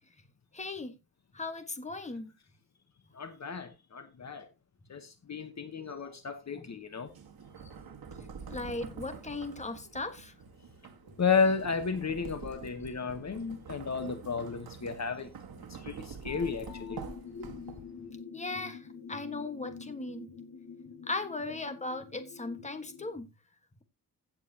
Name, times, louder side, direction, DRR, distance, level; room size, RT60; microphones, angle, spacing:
voice 1, 0.5-0.9 1.3-2.3 6.6-6.7 8.5-10.3 18.3-20.3 21.1-23.3, left 3 dB, 20° left, 1.4 m, -37 dB
voice 2, 3.1-4.5 4.9-7.1 11.2-15.3 15.7-17.0 17.3-17.5, left 5 dB, 50° left, 1.1 m, -33 dB
sound 1, 7.1-18.1, right 6 dB, 80° right, 1.7 m, -47 dB
sound 2, 16.7-23.2, left 5 dB, 65° left, 1.7 m, -47 dB
16.0 x 7.5 x 2.8 m
wide cardioid pair, 150°, 36 cm